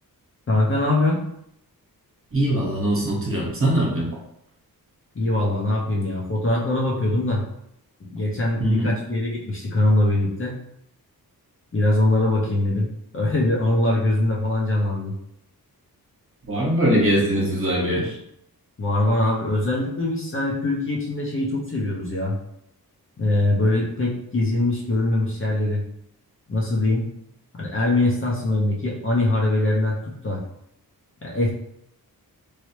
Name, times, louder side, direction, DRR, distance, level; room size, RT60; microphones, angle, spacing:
voice 1, 0.5-1.2 5.1-7.4 8.0-10.5 11.7-15.1 18.8-22.4 23.2-25.8 26.5-27.1 27.6-30.4 31.2-31.5, left 2 dB, 35° left, -3 dB, 0.7 m, -22 dB
voice 2, 2.3-4.0 8.6-8.9 16.5-18.2, right 1 dB, 35° right, -4 dB, 1.1 m, -21 dB
3.1 x 2.7 x 3.0 m, 0.75 s
wide cardioid pair, 145°, 37 cm